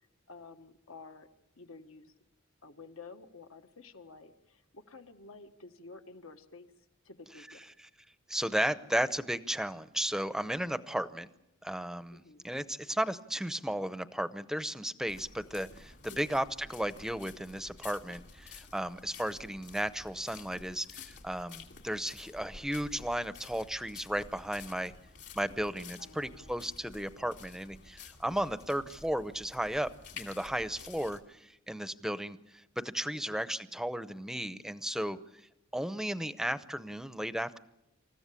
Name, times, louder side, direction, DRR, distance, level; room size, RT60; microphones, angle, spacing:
voice 1, 0.3-1.3 1.6-2.1 2.6-6.7 7.0-7.7 12.1-12.5 16.1-16.3 26.0-26.7 33.1-33.4, left 3 dB, 70° left, 8 dB, 1.4 m, -51 dB
voice 2, 8.3-11.3 11.6-24.9 25.3-35.2 35.7-37.6, right 1 dB, ahead, 13 dB, 0.7 m, -34 dB
sound 1, 15.1-31.2, left 5 dB, 55° left, 2.7 m, -51 dB
27.5 x 14.5 x 8.4 m, 0.91 s
head